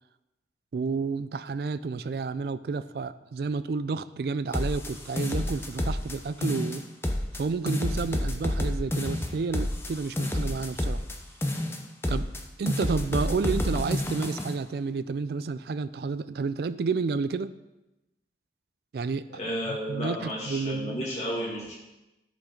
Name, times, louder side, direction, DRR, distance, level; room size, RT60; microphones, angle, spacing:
voice 1, 0.7-6.8 7.3-11.0 12.1-12.3 12.6-17.5 18.9-19.2 19.7-21.1, right 4 dB, 60° right, 14 dB, 0.3 m, -30 dB
sound 1, 4.5-6.2 6.4-7.4 7.7-11.2 11.4-12.4 12.7-14.5, left 1 dB, 15° left, 0.6 m, -29 dB
voice 2, 19.3-21.7, equal, 40° left, -5 dB, 2.4 m, -32 dB
12.0 x 5.2 x 3.9 m, 0.99 s
head